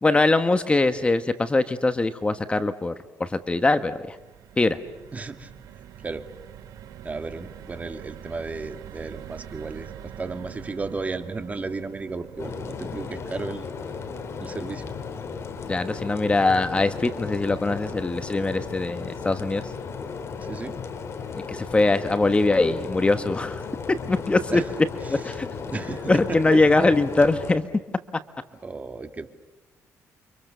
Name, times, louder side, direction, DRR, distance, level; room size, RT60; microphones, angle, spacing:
voice 1, 0.0-2.9 3.2-4.2 4.6-4.8 15.7-19.7 21.5-24.6 25.1-25.5 26.1-27.6, left 2 dB, 20° left, 10 dB, 1.2 m, -22 dB
sound 1, 3.3-19.6 20.0-20.1 20.4-20.6, right 10 dB, 75° right, 2.5 m, -46 dB
voice 2, 5.1-5.5 6.0-6.2 7.0-13.6 14.4-14.9 20.4-20.8 24.5-24.7 25.1-25.2 25.7-26.6 28.6-29.3, right 3 dB, 25° right, 7 dB, 2.3 m, -34 dB
sound 2, 12.4-27.6, left 5 dB, 50° left, 3.4 m, -35 dB
29.5 x 25.5 x 6.8 m, 1.1 s
cardioid pair, 115°, 6 cm